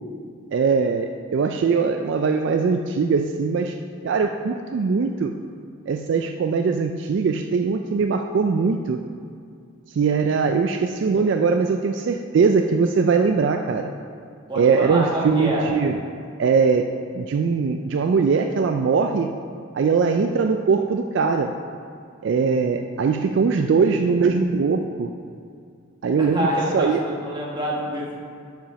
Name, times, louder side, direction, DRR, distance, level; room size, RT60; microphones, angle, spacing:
voice 1, 0.5-3.8 4.0-5.4 5.9-9.0 9.9-13.9 14.6-16.0 16.4-19.3 19.7-21.5 22.2-25.1 26.0-26.5 26.7-27.0, right 5 dB, 60° right, 5 dB, 0.3 m, -21 dB
voice 2, 14.5-15.7 26.2-28.2, right 1 dB, 20° right, -4 dB, 1.4 m, -27 dB
7.4 x 5.0 x 5.6 m, 2.3 s
head